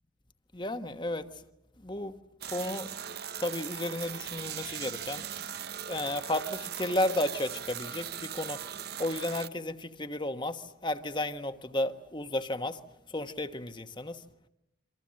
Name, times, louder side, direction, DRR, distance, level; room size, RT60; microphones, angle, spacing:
voice 1, 0.5-1.3 1.8-2.1 2.5-2.9 3.4-5.2 5.9-8.6 9.0-12.8 13.1-14.2, left 1 dB, 25° left, 1.3 m, -33 dB
sound 1, 2.4-9.5, right 9 dB, 55° right, 1.0 m, -39 dB
28.0 x 25.5 x 7.6 m
head